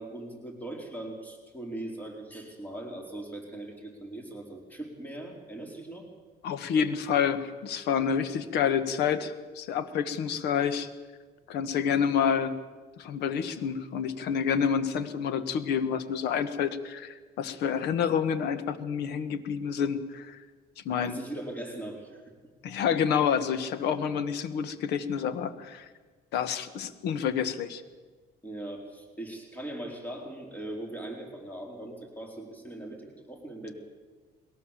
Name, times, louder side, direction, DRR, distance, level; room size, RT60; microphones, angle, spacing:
voice 1, 0.0-6.1 21.0-22.2 28.4-33.7, right 1 dB, 10° left, 1 dB, 4.4 m, -40 dB
voice 2, 6.4-10.9 11.5-12.5 13.0-20.4 20.8-21.1 22.6-25.9 26.3-27.8, left 7 dB, 80° left, 12 dB, 1.5 m, -28 dB
21.5 x 18.0 x 7.5 m, 1.4 s
cardioid pair, 110°, 17 cm